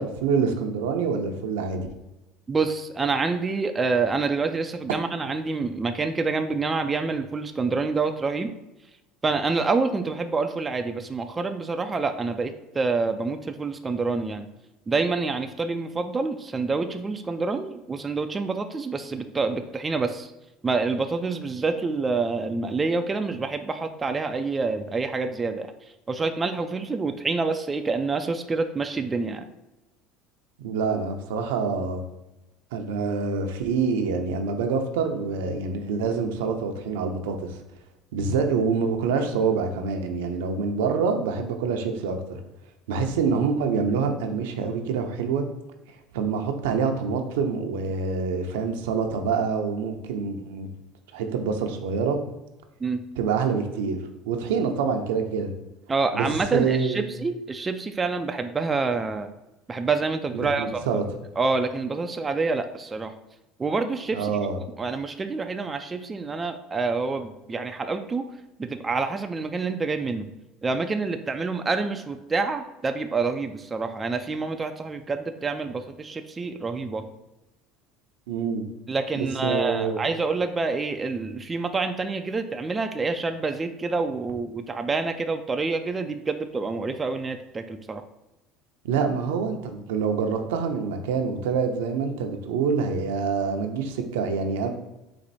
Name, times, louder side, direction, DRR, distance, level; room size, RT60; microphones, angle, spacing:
voice 1, 0.0-1.9 30.6-32.0 32.7-37.6 38.1-42.2 42.9-45.4 46.1-50.7 51.1-52.2 53.2-54.0 54.3-55.5 56.1-57.1 60.3-61.0 64.1-64.6 78.3-78.6 79.2-80.1 88.8-94.7, right 5 dB, 90° right, 5 dB, 0.6 m, -26 dB
voice 2, 2.5-8.5 9.2-14.5 14.9-20.3 20.6-25.7 26.1-29.5 52.8-53.0 55.9-59.3 59.7-61.0 61.4-63.1 63.6-64.3 64.8-68.3 68.6-70.3 70.6-77.0 78.9-88.0, right 4 dB, 20° right, 7 dB, 0.4 m, -27 dB
4.3 x 2.6 x 4.1 m, 0.96 s
supercardioid pair, 110°, 0 cm